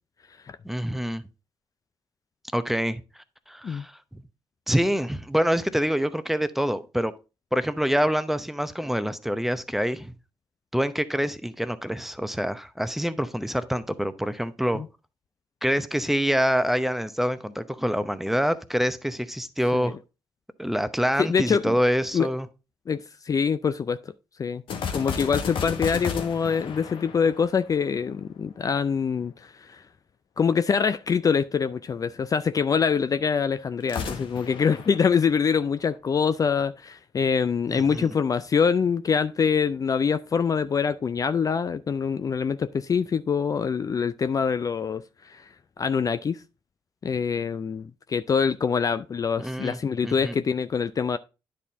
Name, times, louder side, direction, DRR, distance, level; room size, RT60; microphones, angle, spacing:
voice 1, 0.6-1.2 2.5-3.0 3.5-4.2 4.7-7.1 7.5-10.1 10.7-14.8 15.6-20.0 20.6-22.5 37.7-38.1 49.4-49.8 50.0-50.3, equal, 5° right, 0.8 m, -26 dB
voice 2, 21.2-21.7 22.1-22.3 22.9-24.1 24.4-24.6 24.9-29.8 30.4-45.5 45.8-46.4 47.0-51.2, left 6 dB, 40° left, 0.4 m, -25 dB
sound 1, 24.7-28.1 33.8-35.9, left 6 dB, 65° left, 1.1 m, -33 dB
9.9 x 4.3 x 3.5 m
hypercardioid pair, 50°, 9 cm